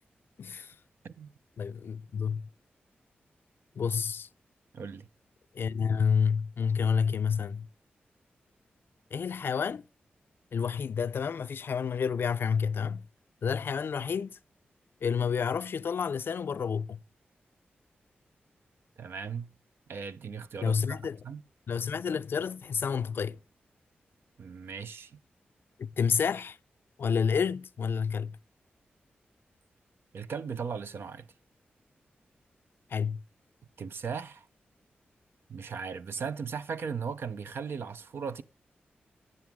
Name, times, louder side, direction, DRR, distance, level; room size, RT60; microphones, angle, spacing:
voice 1, 0.4-0.7 1.6-2.5 3.8-4.3 5.5-7.7 9.1-9.8 10.5-13.0 13.4-14.4 15.0-17.0 20.6-21.2 21.7-23.4 25.8-26.6 27.0-28.4 32.9-33.2, left 6 dB, 70° left, 0.4 m, -29 dB
voice 2, 4.7-5.1 19.0-19.5 19.9-21.4 24.4-25.1 30.1-31.3 33.8-34.5 35.5-38.4, right 6 dB, 75° right, 0.6 m, -37 dB
9.2 x 7.7 x 3.5 m
cardioid pair, 60°, 4 cm